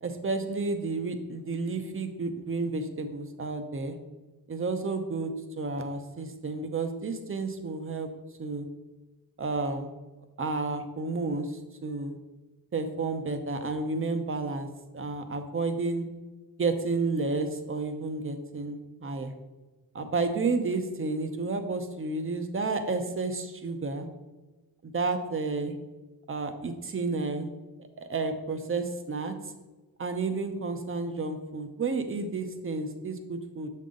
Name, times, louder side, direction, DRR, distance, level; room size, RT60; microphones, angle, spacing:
voice 1, 0.0-4.0 4.5-5.3 5.6-8.1 8.4-8.7 9.4-9.9 10.4-11.5 11.8-12.2 12.7-14.7 14.9-16.1 16.6-19.3 19.9-24.1 24.8-25.8 26.3-27.5 28.0-29.3 30.0-33.7, right 3 dB, 35° right, 8 dB, 0.8 m, -31 dB
7.3 x 5.5 x 3.8 m, 1.2 s
wide cardioid pair, 120°, 39 cm